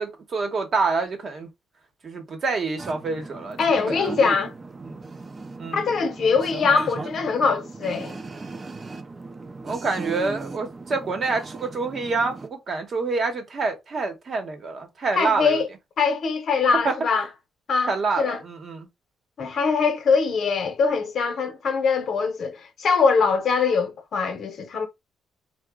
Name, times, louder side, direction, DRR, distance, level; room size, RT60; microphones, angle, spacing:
voice 1, 0.0-1.5 2.0-3.6 3.8-4.1 4.8-5.0 5.6-5.8 9.6-15.6 16.8-16.9 17.9-18.9, right 4 dB, 50° right, 0.9 m, -27 dB
sound 1, 2.8-12.5, right 3 dB, 30° right, 0.5 m, -37 dB
voice 2, 3.6-4.5 5.7-8.2 15.1-15.7 16.0-17.3 17.7-18.4 19.4-24.9, left 5 dB, 60° left, 0.7 m, -22 dB
2.9 x 2.1 x 3.4 m
cardioid pair, 90°, 0 cm